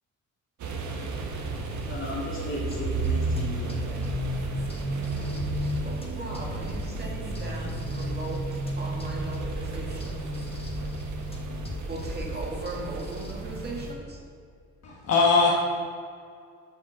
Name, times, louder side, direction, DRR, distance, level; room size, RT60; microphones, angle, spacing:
sound 1, 0.6-13.9, right 2 dB, 70° right, 1.3 m, -32 dB
voice 1, 1.8-4.0, left 2 dB, 45° left, -5 dB, 2.2 m, -36 dB
sound 2, 2.7-13.3, left 1 dB, 20° left, 1.3 m, -40 dB
voice 2, 5.6-10.3 11.9-14.2, right 1 dB, 35° right, -1 dB, 2.2 m, -38 dB
voice 3, 14.8-15.5, left 4 dB, 60° left, -4 dB, 1.4 m, -20 dB
9.3 x 5.1 x 5.8 m, 2.3 s
cardioid pair, 90°, 30 cm